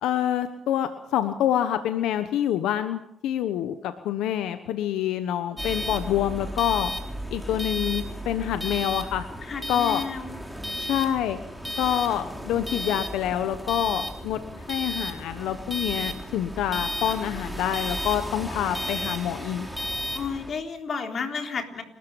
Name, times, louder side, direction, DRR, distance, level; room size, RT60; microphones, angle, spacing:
voice 1, 0.0-6.9 7.3-9.3 9.7-10.0 10.7-11.4 11.8-14.4 14.7-19.7, left 11 dB, 90° left, 9 dB, 1.1 m, -26 dB
sound 1, 5.6-20.5, equal, ahead, 3.5 m, -33 dB
voice 2, 9.4-10.4 20.1-21.8, left 5 dB, 50° left, 4 dB, 3.7 m, -32 dB
30.0 x 13.5 x 7.1 m, 0.76 s
cardioid pair, 90°, 0 cm